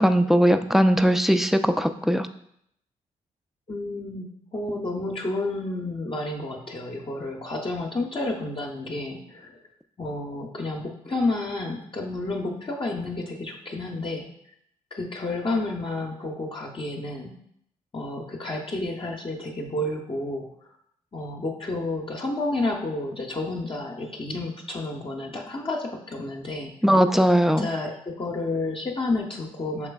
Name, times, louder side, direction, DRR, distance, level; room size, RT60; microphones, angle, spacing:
voice 1, 0.0-2.3 26.8-27.7, equal, ahead, 8 dB, 0.4 m, -19 dB
voice 2, 3.7-9.6 10.0-14.3 14.9-17.4 17.9-20.5 21.1-26.7 27.5-29.9, left 2 dB, 35° left, -1 dB, 0.7 m, -30 dB
6.0 x 3.2 x 2.3 m, 0.72 s
hypercardioid pair, 40°, 16 cm